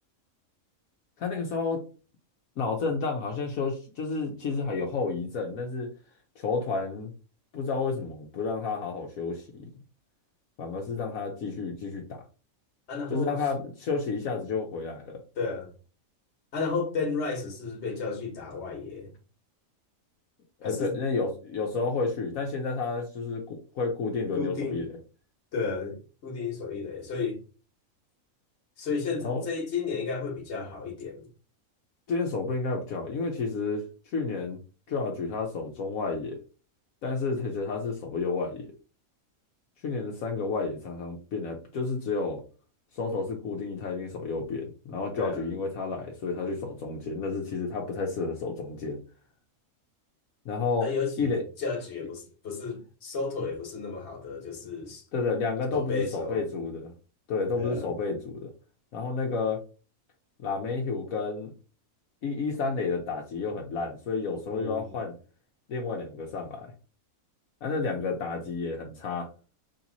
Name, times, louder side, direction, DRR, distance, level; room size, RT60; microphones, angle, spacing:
voice 1, 1.2-1.8 2.6-5.9 6.4-7.1 7.5-9.6 10.6-12.2 13.1-15.2 20.6-24.9 29.2-29.4 32.1-33.8 34.1-34.6 34.9-36.4 37.0-38.7 39.8-42.4 42.9-49.0 50.4-50.9 51.2-51.4 55.1-56.9 57.3-58.5 58.9-59.6 60.4-61.5 62.2-65.1 65.7-66.7 67.6-69.3, left 4 dB, 75° left, 1.2 m, -31 dB
voice 2, 12.9-13.4 15.4-15.7 16.5-19.1 20.6-20.9 24.4-24.8 25.5-27.4 28.8-31.3 45.2-45.5 50.8-55.0 55.7-56.4 57.6-57.9 64.5-65.0, left 4 dB, 55° left, 1.5 m, -33 dB
3.6 x 2.9 x 4.0 m
omnidirectional pair, 1.5 m